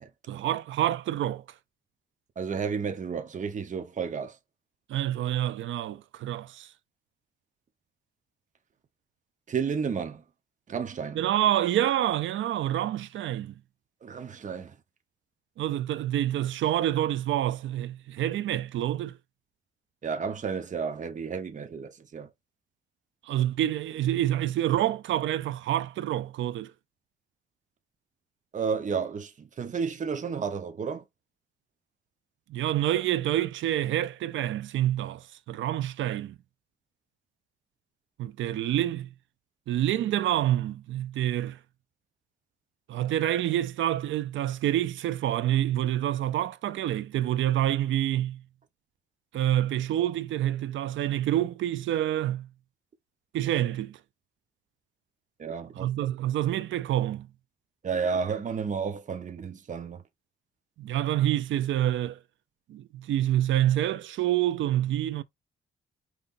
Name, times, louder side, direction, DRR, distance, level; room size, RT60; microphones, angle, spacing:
voice 1, 0.3-1.4 4.9-6.7 11.2-13.5 15.6-19.2 23.3-26.7 32.5-36.4 38.2-39.1 39.7-41.6 42.9-48.4 49.3-52.5 53.3-54.0 55.7-57.3 60.8-62.2 62.7-65.2, right 12 dB, 75° right, 0.6 m, -27 dB
voice 2, 2.4-4.4 9.5-10.2 10.7-11.2 14.0-14.8 20.0-22.3 28.5-31.1 55.4-55.9 57.8-60.0, right 6 dB, 40° right, 1.0 m, -32 dB
5.5 x 3.4 x 2.6 m
cardioid pair, 90°, 20 cm